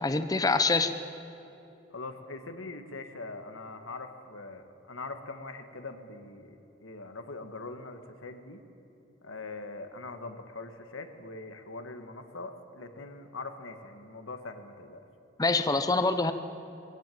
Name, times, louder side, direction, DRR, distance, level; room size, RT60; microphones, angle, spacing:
voice 1, 0.0-0.9 15.4-16.3, left 3 dB, 20° left, 9 dB, 0.7 m, -25 dB
voice 2, 1.9-8.6 9.2-15.0, left 3 dB, 90° left, 7 dB, 1.7 m, -42 dB
21.5 x 16.0 x 9.3 m, 2.9 s
head